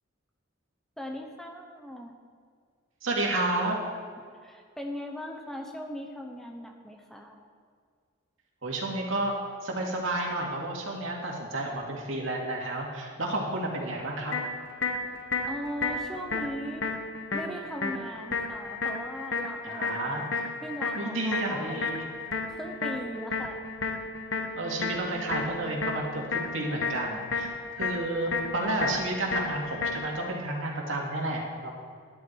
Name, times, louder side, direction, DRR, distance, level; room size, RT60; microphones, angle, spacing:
voice 1, 1.0-2.1 4.2-7.4 15.5-16.9 17.3-22.0 22.5-23.6, equal, ahead, 2 dB, 0.9 m, -39 dB
voice 2, 3.0-3.8 8.6-9.4 9.6-14.3 19.6-20.5 21.0-22.1 24.6-31.7, right 2 dB, 75° right, -1 dB, 2.4 m, -31 dB
sound 1, 14.3-30.3, left 4 dB, 70° left, 1.2 m, -33 dB
12.0 x 11.0 x 4.6 m, 2.1 s
head